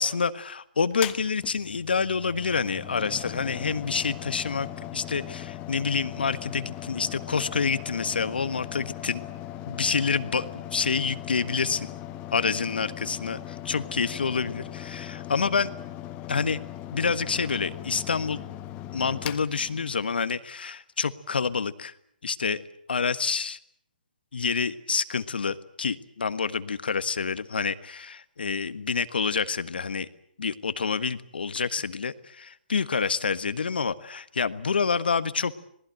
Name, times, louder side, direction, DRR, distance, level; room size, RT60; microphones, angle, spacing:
voice 1, 0.0-9.2 9.7-11.9 12.3-15.7 16.3-16.6 16.9-18.4 18.9-21.9 22.2-22.6 22.9-23.6 24.3-30.1 30.4-35.6, left 5 dB, 75° left, 13 dB, 1.5 m, -28 dB
Mechanical fan, 0.9-20.3, left 13 dB, 25° left, 1.3 m, -39 dB
27.0 x 20.0 x 7.8 m, 0.68 s
figure-of-eight pair, 135°, 5 cm